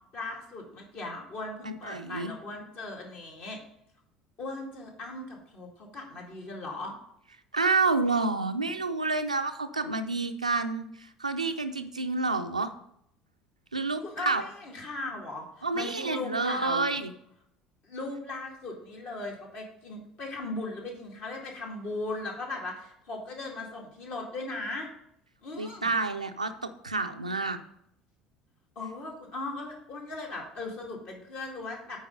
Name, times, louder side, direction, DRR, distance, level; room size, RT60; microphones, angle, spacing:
voice 1, 0.1-3.6 4.4-6.9 14.0-16.9 17.8-24.9 25.4-25.9 28.8-32.0, left 2 dB, 50° left, 0 dB, 2.2 m, -38 dB
voice 2, 1.6-2.3 7.5-12.7 13.7-14.4 15.6-17.1 25.6-27.6, right 3 dB, 85° right, 8 dB, 0.5 m, -29 dB
8.6 x 4.6 x 5.3 m, 0.72 s
figure-of-eight pair, 60°, 4 cm